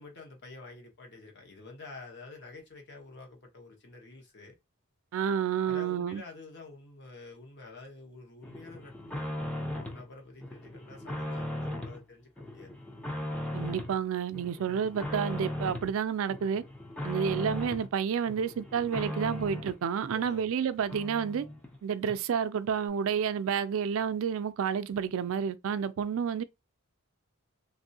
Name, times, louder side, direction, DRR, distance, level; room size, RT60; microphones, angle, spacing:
voice 1, 0.0-4.6 5.6-12.7 20.1-20.5, left 3 dB, 50° left, 1.0 m, -48 dB
voice 2, 5.1-6.2 13.5-16.6 17.0-21.4 21.8-26.4, right 7 dB, 60° right, 0.3 m, -30 dB
sound 1, 8.4-10.0 10.4-12.0 12.4-14.0 14.3-15.9 16.3-17.9 18.3-19.8 20.3-20.4 20.6-20.7 20.9-21.8 22.1-22.2, left 1 dB, 5° left, 0.4 m, -37 dB
3.2 x 2.6 x 2.7 m
head